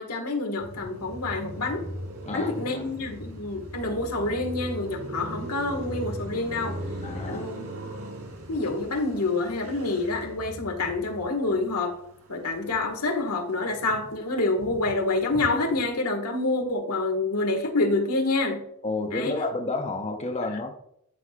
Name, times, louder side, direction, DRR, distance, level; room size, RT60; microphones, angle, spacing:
voice 1, 0.0-1.8 2.3-6.8 7.3-7.6 8.5-11.9 12.3-18.6 19.1-19.3, left 2 dB, 90° left, 1.8 m, -27 dB
Car passing by, 0.6-13.1 13.4-15.9, right 1 dB, 75° right, 3.2 m, -39 dB
voice 2, 2.2-2.8 7.0-7.5 18.8-20.7, left 2 dB, 30° left, 0.9 m, -30 dB
12.5 x 6.4 x 2.5 m
head